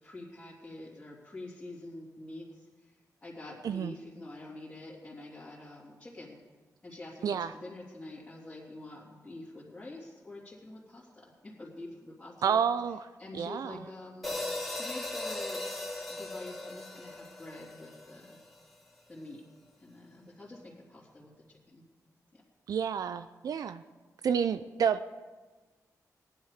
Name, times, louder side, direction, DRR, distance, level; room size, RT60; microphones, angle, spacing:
voice 1, 0.0-2.9 3.2-6.4 6.8-12.6 13.2-15.7 16.1-18.4 19.1-19.4 19.8-21.8 22.3-22.4, left 2 dB, 20° left, -8 dB, 3.0 m, -46 dB
voice 2, 12.4-13.1 13.3-13.8 22.7-23.8 24.2-25.1, right 7 dB, 75° right, 12 dB, 0.5 m, -29 dB
sound 1, 14.2-18.6, left 2 dB, 5° left, 2.4 m, -38 dB
19.0 x 10.5 x 5.0 m, 1.3 s
wide cardioid pair, 145°, 6 cm